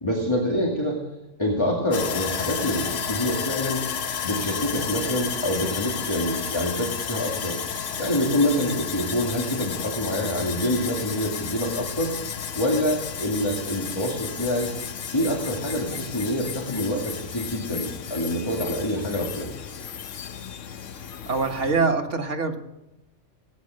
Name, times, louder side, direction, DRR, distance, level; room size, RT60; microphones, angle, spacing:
voice 1, 0.0-1.0 1.4-3.8 4.2-7.6 8.0-12.1 12.5-14.7 15.1-19.5, left 1 dB, 20° left, -2 dB, 2.3 m, -26 dB
Sawing, 1.9-21.8, left 7 dB, 85° left, 1.2 m, -32 dB
voice 2, 21.3-22.6, right 4 dB, 75° right, 3 dB, 1.9 m, -24 dB
19.0 x 9.8 x 6.5 m, 0.94 s
omnidirectional pair, 1.2 m